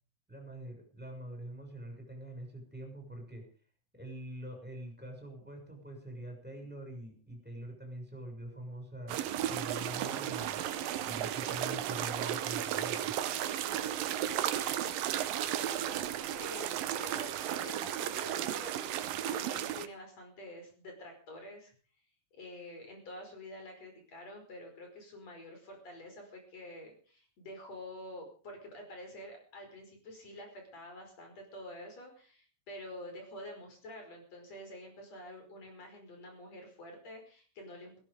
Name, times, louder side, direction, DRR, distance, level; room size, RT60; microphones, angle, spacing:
voice 1, 0.3-3.5 3.9-10.6 11.0-13.2, right 1 dB, ahead, 2 dB, 6.3 m, -45 dB
sound 1, 9.1-19.9, right 11 dB, 75° right, 2.7 m, -34 dB
voice 2, 16.3-16.7 17.0-19.0 19.3-21.7 22.3-38.0, left 1 dB, 45° left, 3 dB, 6.4 m, -48 dB
16.5 x 16.5 x 5.2 m, 0.43 s
omnidirectional pair, 4.2 m